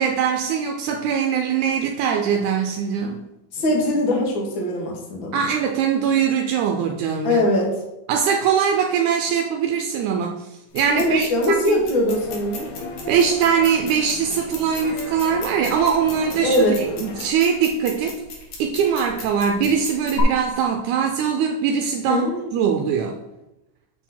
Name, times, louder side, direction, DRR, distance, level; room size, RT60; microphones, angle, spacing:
voice 1, 0.0-3.2 5.3-7.4 8.1-10.5 10.7-11.3 11.7-11.8 13.1-18.2 18.6-23.2, right 7 dB, 80° right, 3 dB, 2.0 m, -22 dB
voice 2, 3.5-5.5 7.2-7.7 10.9-12.7 16.4-16.8 22.1-22.4, left 1 dB, 45° left, -1 dB, 1.9 m, -21 dB
sound 1, 10.7-20.2, left 5 dB, 80° left, 3.0 m, -38 dB
sound 2, 12.1-17.3, left 3 dB, 65° left, 1.3 m, -36 dB
6.3 x 6.0 x 4.3 m, 0.93 s
omnidirectional pair, 3.5 m